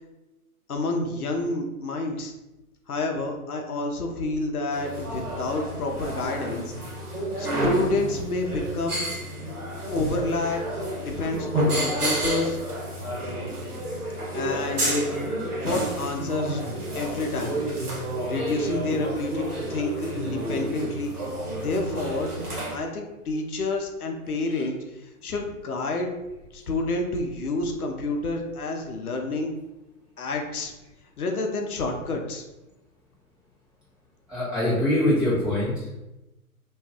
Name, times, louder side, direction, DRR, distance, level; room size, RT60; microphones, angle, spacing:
voice 1, 0.7-2.3 2.9-6.6 7.4-9.0 9.9-10.6 11.1-12.6 14.3-15.1 15.6-16.6 16.9-17.6 18.3-21.1 21.6-22.3 22.7-24.7 25.2-26.1 26.5-29.5 30.2-30.7 31.2-32.4, left 2 dB, 75° left, 2 dB, 0.7 m, -28 dB
sound 1, 4.7-22.8, right 1 dB, 80° right, 1.0 m, -30 dB
voice 2, 24.3-24.6 34.3-35.9, left 1 dB, ahead, -10 dB, 0.9 m, -24 dB
2.5 x 2.3 x 3.5 m, 1.0 s
figure-of-eight pair, 115°, 44 cm